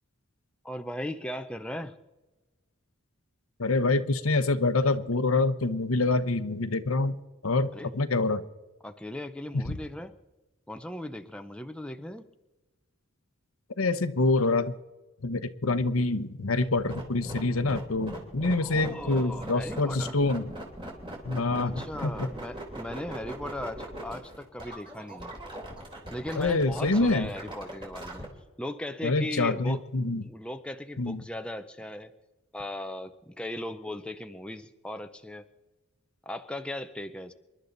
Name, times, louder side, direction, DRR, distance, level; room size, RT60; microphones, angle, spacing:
voice 1, 0.6-1.9 7.7-7.9 8.8-10.1 10.7-12.3 18.6-20.2 21.6-25.3 26.1-28.3 28.6-29.8 30.2-32.1 32.5-35.4 36.3-37.3, left 1 dB, 5° left, 7 dB, 0.7 m, -38 dB
voice 2, 3.6-7.2 7.4-8.4 9.5-9.7 13.8-14.7 15.2-20.4 21.2-22.3 26.4-27.3 29.0-30.2 31.0-31.2, left 3 dB, 85° left, 12 dB, 1.0 m, -26 dB
sound 1, 16.6-28.3, right 1 dB, 25° right, 3.3 m, -40 dB
27.5 x 11.5 x 4.0 m, 1.1 s
head